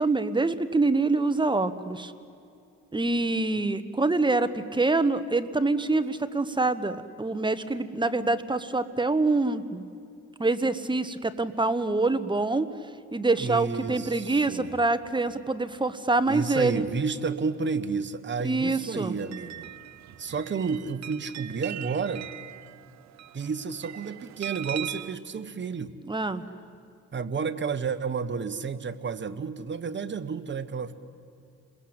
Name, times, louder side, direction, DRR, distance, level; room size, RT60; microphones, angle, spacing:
voice 1, 0.0-2.1 2.9-9.8 10.4-12.7 13.1-16.9 18.4-19.1 26.1-26.4, right 3 dB, 15° right, 11 dB, 1.4 m, -25 dB
voice 2, 13.4-14.8 16.3-19.7 20.2-22.3 23.3-25.9 27.1-30.9, right 5 dB, 40° right, 10 dB, 1.4 m, -31 dB
sound 1, 19.0-25.1, right 12 dB, 65° right, 0.8 m, -41 dB
30.0 x 21.0 x 9.0 m, 2.6 s
cardioid pair, 90°, 30 cm